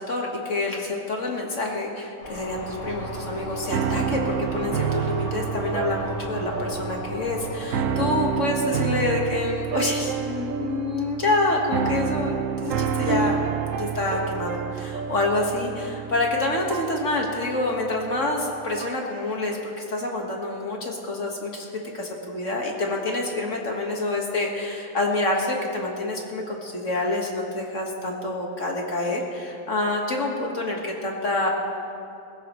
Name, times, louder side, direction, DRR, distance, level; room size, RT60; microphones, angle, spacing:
voice 1, 0.0-12.3 12.6-13.4 13.7-21.7 21.9-31.5, left 2 dB, 40° left, 0 dB, 1.8 m, -27 dB
sound 1, 2.2-8.2, left 1 dB, 60° left, 5.3 m, -37 dB
sound 2, 2.8-19.1, right 7 dB, 80° right, 0.7 m, -29 dB
21.0 x 15.5 x 3.1 m, 2.7 s
omnidirectional pair, 2.1 m